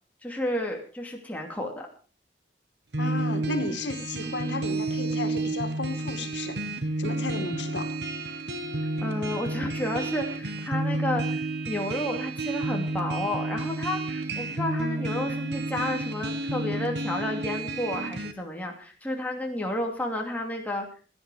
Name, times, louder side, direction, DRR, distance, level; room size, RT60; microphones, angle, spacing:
voice 1, 0.2-1.9 9.0-20.9, left 1 dB, 10° left, 0 dB, 2.7 m, -31 dB
sound 1, 2.9-18.3, right 2 dB, 70° right, 1.4 m, -31 dB
voice 2, 3.0-6.6 7.0-7.9, left 2 dB, 90° left, 7 dB, 2.2 m, -33 dB
17.0 x 10.5 x 5.0 m, 0.40 s
head